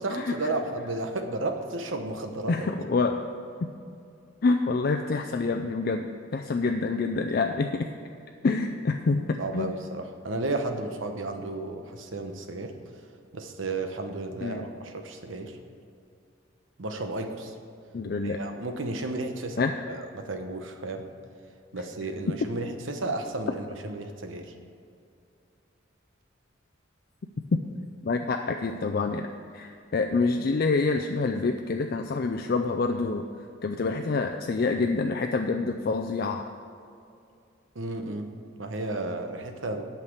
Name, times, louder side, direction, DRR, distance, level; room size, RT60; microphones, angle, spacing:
voice 1, 0.0-2.7 9.4-12.7 13.3-15.6 16.8-17.5 18.2-21.1 21.7-24.5 37.7-38.3 38.6-39.9, right 2 dB, 85° right, 6 dB, 1.0 m, -33 dB
voice 2, 2.5-3.2 3.6-3.7 4.4-7.9 8.4-9.7 14.4-14.7 17.9-18.4 19.6-19.8 28.0-29.3 29.5-33.2 33.6-36.5, left 3 dB, 50° left, 4 dB, 0.4 m, -27 dB
8.9 x 5.9 x 8.0 m, 2.5 s
head